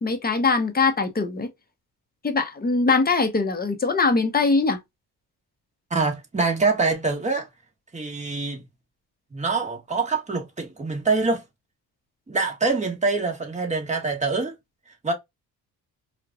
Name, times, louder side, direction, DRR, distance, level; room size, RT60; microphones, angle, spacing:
voice 1, 0.0-1.5 2.2-4.8, left 4 dB, 25° left, 1.0 m, -22 dB
voice 2, 5.9-7.5 7.9-8.7 9.3-11.4 12.3-14.5 15.0-15.1, right 3 dB, 15° right, 1.5 m, -25 dB
4.6 x 2.5 x 2.3 m
cardioid pair, 95°, 40 cm